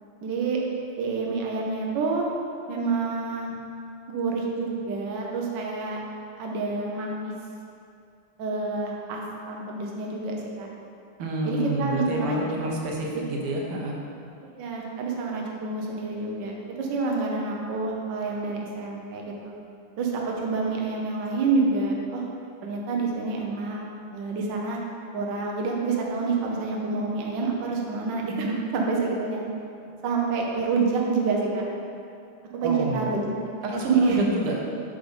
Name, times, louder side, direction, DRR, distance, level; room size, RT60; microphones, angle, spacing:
voice 1, 0.2-0.6 1.0-2.3 2.7-3.5 4.1-6.0 6.4-7.3 8.4-10.7 11.4-12.4 14.6-19.5 20.0-22.3 22.6-23.8 24.1-24.8 25.1-29.4 30.0-31.7 32.5-33.5 33.9-34.2, right 4 dB, 60° right, -1 dB, 1.4 m, -27 dB
voice 2, 11.2-14.0 32.6-33.1 33.6-34.6, right 1 dB, 80° right, -1 dB, 1.8 m, -28 dB
7.7 x 4.8 x 5.3 m, 2.5 s
omnidirectional pair, 2.4 m